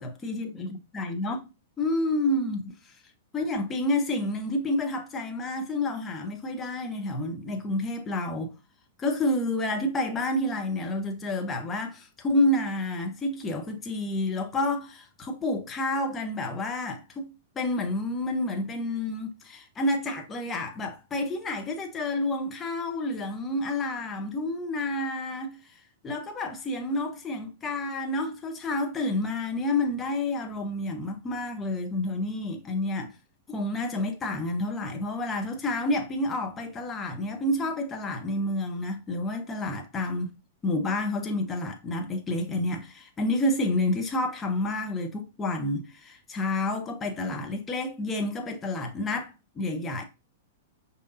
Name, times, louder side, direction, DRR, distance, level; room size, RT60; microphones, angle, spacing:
voice 1, 0.0-1.5 1.8-2.6 3.3-8.6 9.0-25.6 26.0-33.1 33.5-40.3 40.6-50.0, left 1 dB, 20° left, 0.9 m, -29 dB
5.0 x 2.8 x 2.6 m
figure-of-eight pair, 100°, 0 cm